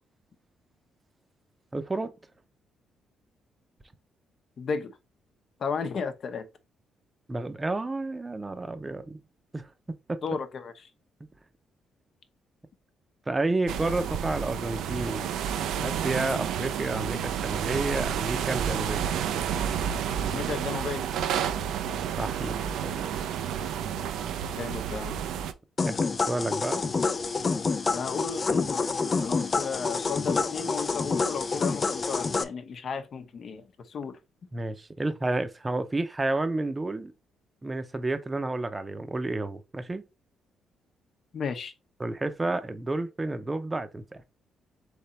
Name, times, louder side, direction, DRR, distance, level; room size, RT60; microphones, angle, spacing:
voice 1, 1.7-2.1 7.3-9.2 9.5-10.2 13.3-15.3 15.8-19.1 22.2-22.6 22.8-23.1 25.8-26.9 34.5-37.1 37.6-40.1 42.0-44.2, right 2 dB, 20° right, 0.7 m, -31 dB
voice 2, 4.6-4.9 5.6-6.5 10.2-10.7 20.3-21.0 24.6-25.2 27.9-28.9 29.2-34.2 41.3-41.7, left 5 dB, 55° left, 0.8 m, -34 dB
sound 1, 13.7-25.5, right 8 dB, 85° right, 0.5 m, -30 dB
sound 2, 25.8-32.4, left 4 dB, 35° left, 0.5 m, -28 dB
3.8 x 3.4 x 4.1 m
cardioid pair, 90°, 0 cm